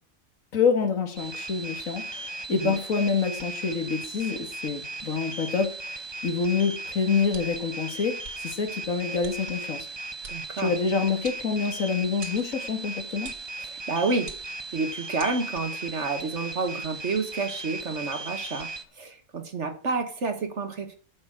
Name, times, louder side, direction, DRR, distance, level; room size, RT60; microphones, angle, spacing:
voice 1, 0.5-9.9 10.6-13.3, left 5 dB, 60° left, 2.2 m, -27 dB
sound 1, 1.2-18.8, right 2 dB, 20° right, 1.0 m, -37 dB
sound 2, 7.3-7.7 8.2-8.4 9.2-9.4 10.2-10.4 11.2-11.8 12.2-12.5 13.2-13.5 14.2-14.7 15.2-15.3, right 5 dB, 85° right, 2.2 m, -43 dB
voice 2, 10.3-10.7 13.6-14.3 14.7-20.9, right 3 dB, 50° right, 1.7 m, -30 dB
12.5 x 6.1 x 6.3 m
omnidirectional pair, 1.6 m